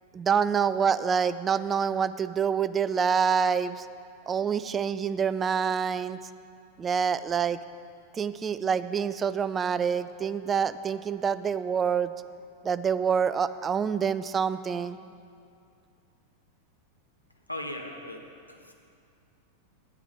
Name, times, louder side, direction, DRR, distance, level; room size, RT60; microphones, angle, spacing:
voice 1, 0.1-3.9 4.3-6.2 6.8-7.6 8.1-12.1 12.6-15.0, right 7 dB, 20° right, 14 dB, 0.3 m, -26 dB
voice 2, 17.3-18.7, left 1 dB, 85° left, 2 dB, 1.0 m, -39 dB
9.8 x 9.1 x 4.7 m, 2.4 s
figure-of-eight pair, 90°, 0 cm